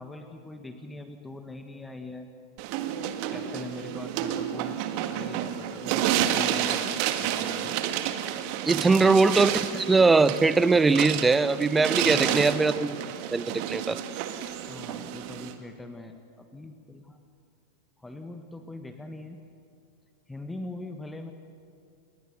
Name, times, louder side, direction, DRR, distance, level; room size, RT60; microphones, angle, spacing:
voice 1, 0.0-2.3 3.3-4.8 5.0-7.7 8.7-9.2 12.0-12.6 14.7-17.2 18.0-19.4 20.3-21.3, left 2 dB, 10° left, 7 dB, 1.5 m, -42 dB
sound 1, 2.6-15.5, right 10 dB, 45° right, 1.6 m, -30 dB
voice 2, 8.7-13.0 13.3-14.0, right 3 dB, 10° right, 15 dB, 0.8 m, -21 dB
29.0 x 21.0 x 6.9 m, 2.4 s
figure-of-eight pair, 90°, 0 cm